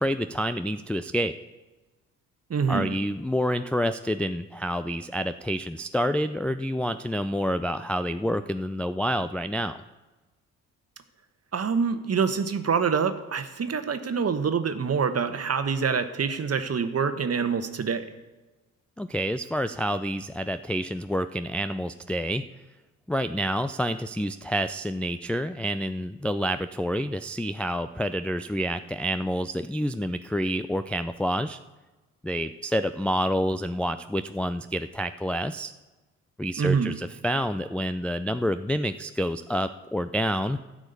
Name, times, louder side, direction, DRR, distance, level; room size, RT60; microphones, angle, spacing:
voice 1, 0.0-1.4 2.7-9.8 19.0-22.4 23.1-31.6 32.2-35.7 36.4-40.6, equal, 5° left, 9 dB, 0.4 m, -28 dB
voice 2, 2.5-2.9 11.5-18.1 36.6-37.0, right 6 dB, 40° right, 9 dB, 1.3 m, -26 dB
13.0 x 5.0 x 8.2 m, 1.2 s
hypercardioid pair, 45°, 40 cm